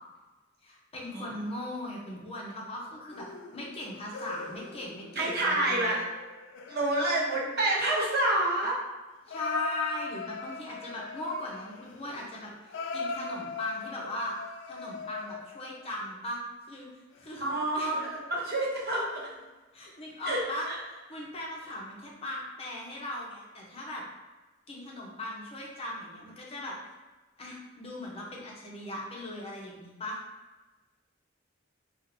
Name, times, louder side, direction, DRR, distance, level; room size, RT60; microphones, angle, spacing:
voice 1, 0.6-3.3 3.5-6.0 9.3-14.3 14.7-16.9 17.2-18.0 19.7-24.0 24.7-26.8 27.4-30.2, left 1 dB, 30° left, -3 dB, 0.7 m, -38 dB
sound 1, 3.1-8.3 9.3-15.8 17.1-18.8 19.2-19.4 20.2-20.3, left 4 dB, 65° left, 0.3 m, -42 dB
voice 2, 5.2-6.0 6.7-8.8 17.4-19.2 20.3-20.8, right 1 dB, 55° right, -4 dB, 0.9 m, -28 dB
4.3 x 2.5 x 2.6 m, 1.2 s
head